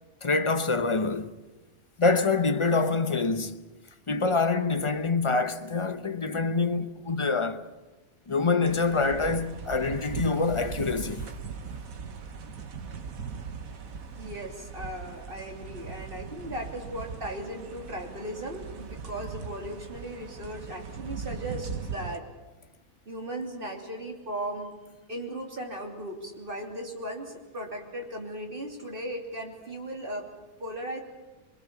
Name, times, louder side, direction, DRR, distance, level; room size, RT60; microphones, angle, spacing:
voice 1, 0.2-1.4 2.0-3.6 4.1-7.7 8.3-11.3, left 3 dB, 30° left, 0.6 m, -26 dB
sound 1, 8.6-22.2, right 6 dB, 65° right, 1.7 m, -39 dB
voice 2, 14.2-22.2 23.0-24.7 25.1-30.3 30.6-31.0, right 1 dB, 35° right, 3.2 m, -37 dB
24.0 x 22.0 x 7.1 m
omnidirectional pair, 1.6 m